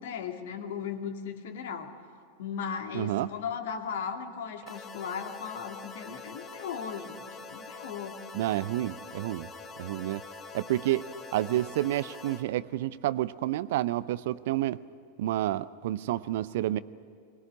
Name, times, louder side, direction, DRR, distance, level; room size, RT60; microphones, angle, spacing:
voice 1, 0.0-1.9 2.4-8.2, left 7 dB, 55° left, 5 dB, 2.2 m, -37 dB
voice 2, 2.9-3.3 8.3-9.5 9.8-10.2 10.5-11.1 11.3-14.8 15.2-16.8, right 14 dB, 55° right, 18 dB, 0.6 m, -29 dB
sound 1, 4.7-12.4, left 4 dB, 25° left, 2.2 m, -45 dB
22.5 x 20.5 x 9.8 m, 2.1 s
figure-of-eight pair, 90°, 0 cm